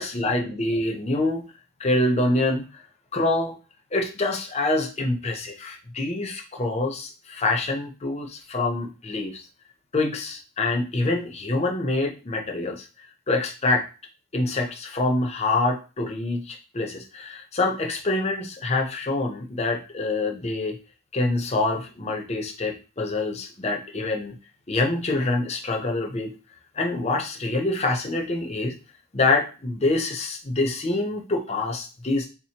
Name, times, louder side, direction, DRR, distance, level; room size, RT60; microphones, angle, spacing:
voice 1, 0.0-1.5 1.8-2.8 3.1-3.6 3.9-9.4 9.9-12.8 13.3-13.8 14.3-20.8 21.1-24.3 24.7-26.4 26.8-28.7 29.1-32.3, left 2 dB, 30° left, 2 dB, 0.6 m, -26 dB
3.8 x 2.8 x 2.8 m, 0.33 s
head